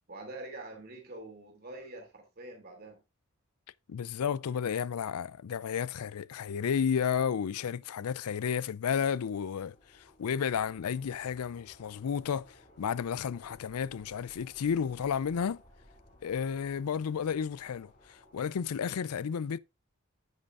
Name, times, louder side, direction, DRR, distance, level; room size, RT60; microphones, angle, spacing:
voice 1, 0.1-3.0, right 2 dB, 45° right, 2.7 m, -45 dB
voice 2, 3.9-15.6 16.2-19.6, left 7 dB, 90° left, 0.4 m, -32 dB
sound 1, 9.1-18.7, left 1 dB, 35° left, 2.7 m, -59 dB
9.4 x 8.9 x 2.5 m
head